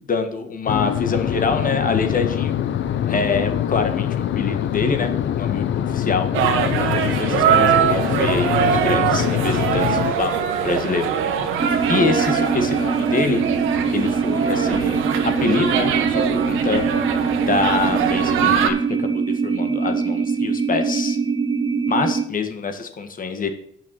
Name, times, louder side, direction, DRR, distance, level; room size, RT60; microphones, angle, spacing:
voice 1, 0.1-2.6 3.1-4.1 4.3-6.3 6.8-11.1 11.9-13.4 13.9-15.9 16.3-16.8 17.5-21.2 21.9-23.5, left 4 dB, 45° left, 7 dB, 1.6 m, -25 dB
sound 1, 0.7-10.1, left 10 dB, 70° left, 0.8 m, -24 dB
sound 2, 6.3-18.7, right 8 dB, 90° right, 1.3 m, -22 dB
sound 3, 11.6-22.2, right 5 dB, 20° right, 0.8 m, -23 dB
7.3 x 5.8 x 7.6 m, 0.69 s
cardioid pair, 90°, 20 cm